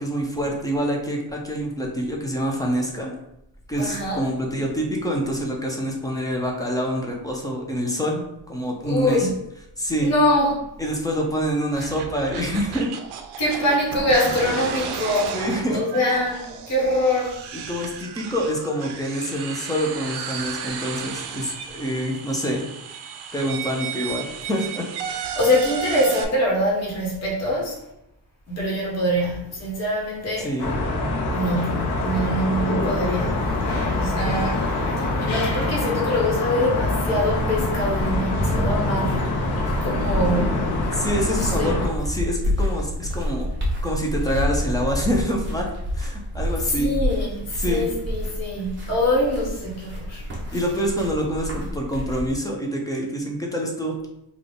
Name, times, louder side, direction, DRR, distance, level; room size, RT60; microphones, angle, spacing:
voice 1, 0.0-3.1 3.7-9.3 9.8-10.1 10.8-12.9 13.5-13.6 15.3-15.8 17.7-22.6 23.3-24.9 30.4-30.7 40.9-43.5 43.8-45.7 46.0-46.9 47.6-47.9 50.5-53.9, equal, 10° left, 0 dB, 0.4 m, -26 dB
voice 2, 3.8-4.3 8.8-9.3 10.0-10.6 11.8-11.9 13.4-15.4 15.7-17.4 25.3-27.7 28.5-30.5 31.3-34.7 35.0-39.4 39.8-40.7 41.2-41.7 46.7-50.6, left 1 dB, 40° left, -4 dB, 1.1 m, -24 dB
sound 1, 11.7-26.2, right 7 dB, 70° right, 0.5 m, -34 dB
sound 2, 30.6-41.9, left 2 dB, 65° left, 0.8 m, -25 dB
sound 3, 37.2-52.3, left 1 dB, 25° right, 0.8 m, -29 dB
3.5 x 2.3 x 3.8 m, 0.84 s
cardioid pair, 180°, 42 cm